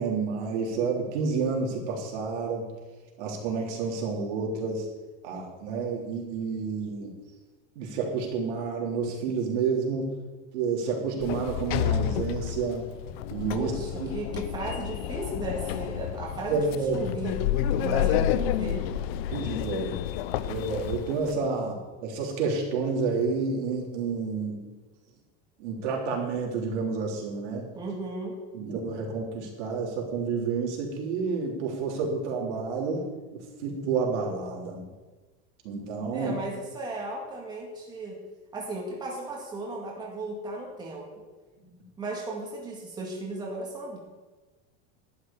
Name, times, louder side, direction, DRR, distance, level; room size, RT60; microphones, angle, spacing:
voice 1, 0.0-2.7 3.2-4.9 5.2-7.1 7.8-10.1 10.5-12.8 13.3-13.7 14.0-14.2 16.5-17.1 19.3-20.0 20.4-21.8 22.0-24.6 25.6-27.7 28.5-33.0 33.3-34.8 35.6-36.3, right 4 dB, 85° right, -1 dB, 3.6 m, -29 dB
Sliding door, 11.2-21.3, left 11 dB, 60° left, 0.6 m, -30 dB
voice 2, 13.5-16.6 16.9-17.3 17.8-18.8 27.7-28.3 36.1-38.2 38.5-41.0 42.0-44.0, right 2 dB, 10° right, -2 dB, 2.0 m, -35 dB
12.0 x 6.7 x 8.5 m, 1.3 s
cardioid pair, 180°, 34 cm